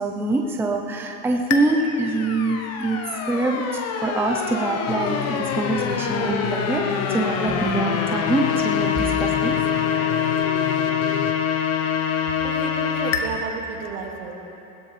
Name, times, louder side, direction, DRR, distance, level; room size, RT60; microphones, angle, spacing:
voice 1, 0.0-3.0 3.3-3.6 4.0-9.6, right 2 dB, 5° right, 1 dB, 0.8 m, -24 dB
sound 1, 1.5-13.2, left 7 dB, 35° left, 1.3 m, -25 dB
sound 2, 4.9-11.3, left 8 dB, 65° left, 1.2 m, -32 dB
voice 2, 12.4-14.4, right 5 dB, 65° right, 1 dB, 2.4 m, -32 dB
20.5 x 16.0 x 3.4 m, 3.0 s
supercardioid pair, 120°, 43 cm